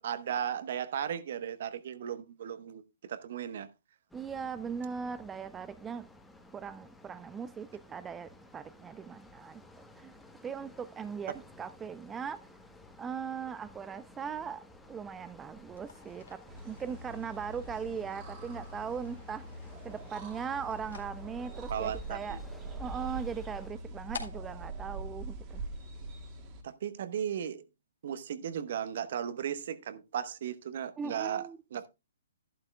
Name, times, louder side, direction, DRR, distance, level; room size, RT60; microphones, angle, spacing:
voice 1, 0.0-2.8 3.1-3.7 21.7-22.4 26.6-27.6 28.0-31.9, right 9 dB, 55° right, 1.0 m, -36 dB
sound 1, 4.1-23.7, left 2 dB, 5° left, 1.1 m, -55 dB
voice 2, 4.1-6.0 6.5-9.6 10.0-10.1 10.4-12.4 13.0-16.4 16.6-19.4 19.8-22.4 22.8-25.6 31.0-31.6, right 6 dB, 15° right, 0.4 m, -39 dB
sound 2, 15.6-26.0, left 5 dB, 75° left, 2.2 m, -52 dB
sound 3, 16.5-26.6, right 2 dB, 30° right, 1.8 m, -43 dB
12.0 x 11.5 x 2.2 m
hypercardioid pair, 135°, 0 cm